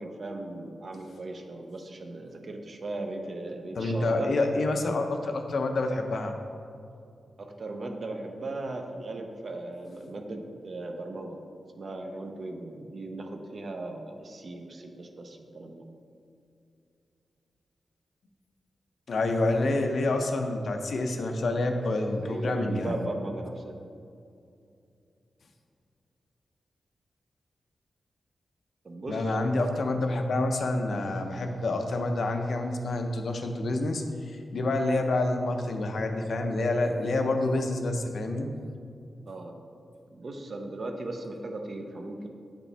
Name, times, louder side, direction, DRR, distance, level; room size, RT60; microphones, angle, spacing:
voice 1, 0.0-4.3 7.4-11.4 11.8-15.8 22.2-23.8 28.8-29.4 39.3-39.5 40.1-42.3, right 2 dB, 40° right, 4 dB, 0.6 m, -37 dB
voice 2, 3.8-6.3 19.1-22.9 29.1-38.5, left 2 dB, 60° left, 5 dB, 0.5 m, -28 dB
8.3 x 5.1 x 3.3 m, 2.5 s
wide cardioid pair, 160°, 0 cm